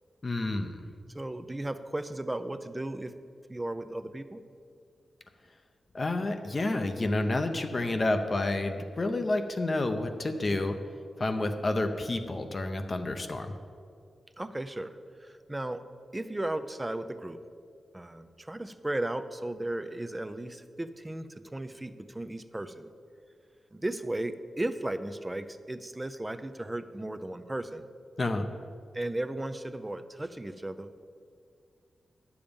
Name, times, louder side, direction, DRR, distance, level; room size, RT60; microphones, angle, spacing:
voice 1, 0.2-0.8 5.9-10.8 11.2-13.5 28.2-28.5, left 2 dB, 40° left, 7 dB, 0.7 m, -29 dB
voice 2, 1.1-3.1 3.5-4.4 14.4-15.8 16.1-17.4 17.9-22.9 23.7-27.9 28.9-31.0, right 1 dB, 15° right, 10 dB, 0.5 m, -35 dB
10.5 x 7.0 x 5.2 m, 2.3 s
wide cardioid pair, 90°, 0 cm